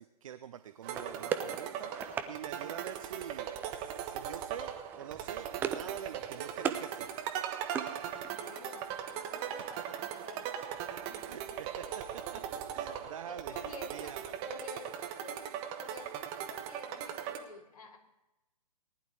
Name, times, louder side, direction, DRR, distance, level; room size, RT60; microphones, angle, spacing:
voice 1, 0.0-7.1 11.2-12.4 12.7-14.3, right 9 dB, 50° right, 12 dB, 0.6 m, -46 dB
sound 1, 0.8-17.4, right 9 dB, 25° right, 1.1 m, -39 dB
sound 2, 0.9-2.3 3.6-4.0 4.3-4.6 4.9-6.0 6.2-6.9 7.2-8.5, right 7 dB, 10° right, 0.4 m, -38 dB
voice 2, 8.2-10.5 11.0-11.6 12.3-12.5 13.2-14.2 14.4-18.0, left 4 dB, 55° left, 1 dB, 2.5 m, -51 dB
18.5 x 11.0 x 3.3 m, 0.97 s
figure-of-eight pair, 130°, 21 cm